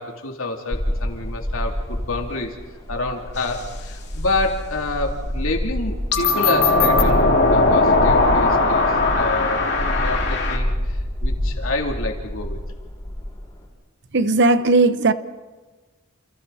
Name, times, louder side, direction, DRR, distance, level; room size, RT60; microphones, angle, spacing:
voice 1, 0.0-2.6 2.9-12.6, left 2 dB, 70° left, 3.3 m, -28 dB
sound 1, 0.7-13.6, equal, 15° left, 6.1 m, -28 dB
sound 2, 3.4-3.7 6.1-10.6, left 3 dB, 50° left, 2.8 m, -18 dB
voice 2, 14.1-15.1, right 3 dB, 55° right, 1.0 m, -16 dB
30.0 x 29.5 x 4.3 m
head